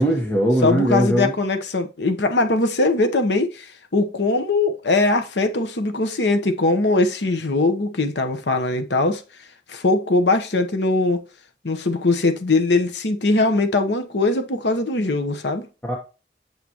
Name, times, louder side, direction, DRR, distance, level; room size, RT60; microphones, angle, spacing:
voice 1, 0.0-1.3 15.8-16.0, equal, 10° left, 1.3 m, -20 dB
voice 2, 0.6-9.2 9.7-11.2 11.6-15.7, left 2 dB, 85° left, 1.1 m, -21 dB
8.4 x 6.8 x 3.0 m
head